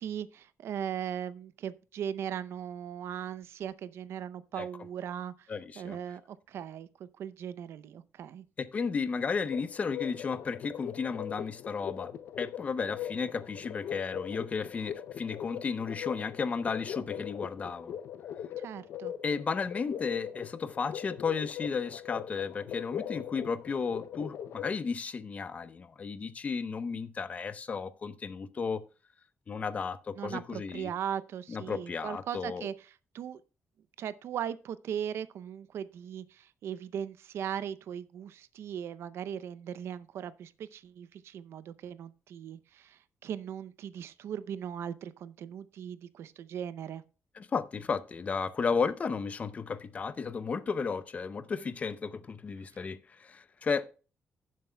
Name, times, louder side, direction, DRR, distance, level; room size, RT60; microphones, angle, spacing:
voice 1, 0.0-5.5 5.8-8.4 18.6-19.1 30.2-32.7 33.1-33.4 34.0-47.0, right 9 dB, 80° right, 0.6 m, -38 dB
voice 2, 5.5-6.0 8.6-12.1 12.4-18.0 19.2-28.8 29.5-30.9 31.5-32.7 47.4-53.9, left 5 dB, 35° left, 0.6 m, -33 dB
sound 1, 9.5-24.8, left 9 dB, 75° left, 0.6 m, -41 dB
15.5 x 7.5 x 2.2 m
wide cardioid pair, 155°, 4 cm